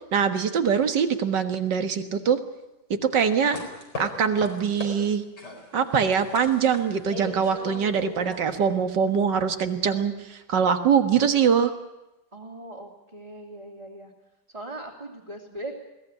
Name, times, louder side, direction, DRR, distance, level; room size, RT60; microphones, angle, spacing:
voice 1, 0.1-2.4 2.9-3.6 4.0-5.2 5.7-11.7, right 7 dB, 75° right, 8 dB, 2.2 m, -23 dB
sound 1, 3.2-4.9 5.4-8.4, left 3 dB, 65° left, 5.1 m, -38 dB
voice 2, 12.3-14.1 14.5-15.7, right 1 dB, 20° right, -4 dB, 2.7 m, -39 dB
21.5 x 17.5 x 9.8 m, 0.99 s
omnidirectional pair, 1.9 m